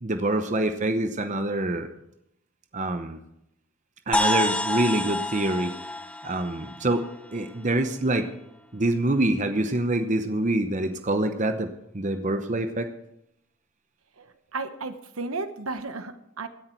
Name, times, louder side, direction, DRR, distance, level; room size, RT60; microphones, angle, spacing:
voice 1, 0.0-1.9 2.7-3.2 4.1-5.7 6.2-7.0 7.3-8.3 8.7-12.9, right 1 dB, 35° right, 8 dB, 0.9 m, -26 dB
sound 1, 4.1-7.9, left 1 dB, 5° left, 0.6 m, -29 dB
voice 2, 14.2-16.5, right 3 dB, 70° right, 10 dB, 1.0 m, -34 dB
16.0 x 10.5 x 4.5 m, 0.80 s
head